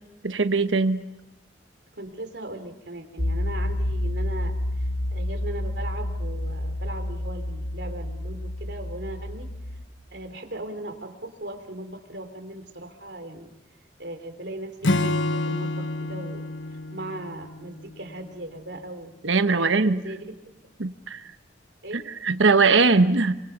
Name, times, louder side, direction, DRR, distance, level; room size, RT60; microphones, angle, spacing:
voice 1, 0.2-1.0 19.2-20.0 20.8-21.2 21.9-23.3, right 4 dB, 90° right, 10 dB, 1.1 m, -20 dB
voice 2, 2.0-9.5 10.1-13.5 14.0-19.1 19.5-20.3 21.8-22.1, right 1 dB, 65° right, 6 dB, 3.6 m, -38 dB
sound 1, 3.2-9.8, left 1 dB, 65° left, 7.8 m, -29 dB
Acoustic guitar / Strum, 14.8-18.3, left 2 dB, 85° left, 1.0 m, -28 dB
28.5 x 25.0 x 5.9 m, 0.97 s
head